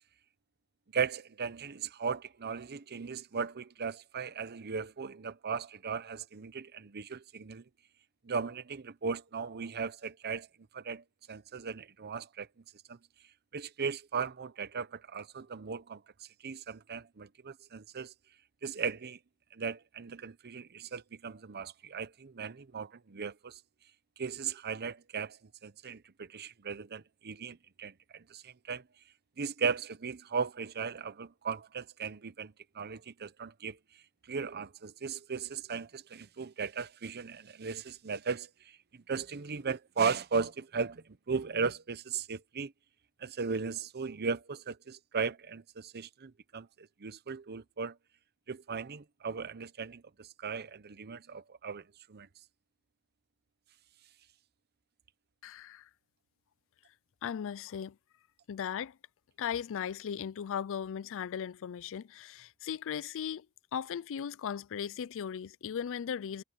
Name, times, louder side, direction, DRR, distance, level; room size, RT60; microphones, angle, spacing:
voice 1, 0.9-7.6 8.2-10.5 10.7-12.5 12.9-13.0 13.5-18.1 18.6-19.2 19.5-23.6 24.2-28.8 29.4-33.8 34.3-42.7 43.2-48.0 48.5-51.8 52.1-52.3, right 5 dB, 45° right, 0.7 m, -37 dB
voice 2, 55.4-55.9 57.2-58.0 58.5-59.0 59.4-63.5 63.7-66.4, left 8 dB, 60° left, 0.4 m, -37 dB
head